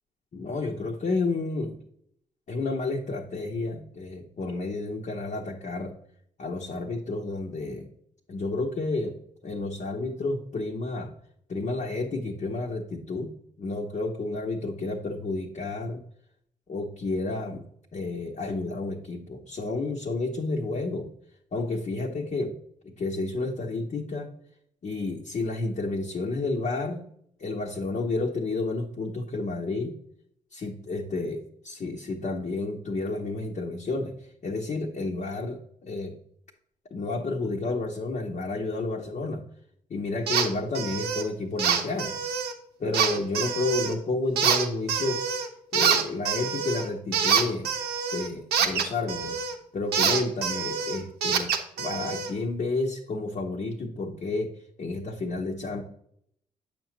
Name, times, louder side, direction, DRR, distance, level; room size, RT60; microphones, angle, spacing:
voice 1, 0.3-1.8 2.5-5.9 6.4-7.9 8.3-11.1 11.5-16.0 16.7-17.6 17.9-21.1 21.5-22.5 22.8-24.3 24.8-27.0 27.4-30.0 30.5-36.2 36.9-39.4 39.9-42.2 42.8-45.2 45.7-47.7 48.1-49.4 49.7-51.5 51.8-55.8, left 3 dB, 45° left, 0 dB, 1.0 m, -31 dB
sound 1, 40.3-40.5 40.7-41.2 41.6-42.5 42.9-43.9 44.4-45.5 45.7-49.5 49.9-52.3, right 7 dB, 75° right, 0.8 m, -26 dB
8.5 x 6.0 x 2.8 m, 0.69 s
hypercardioid pair, 40°, 17 cm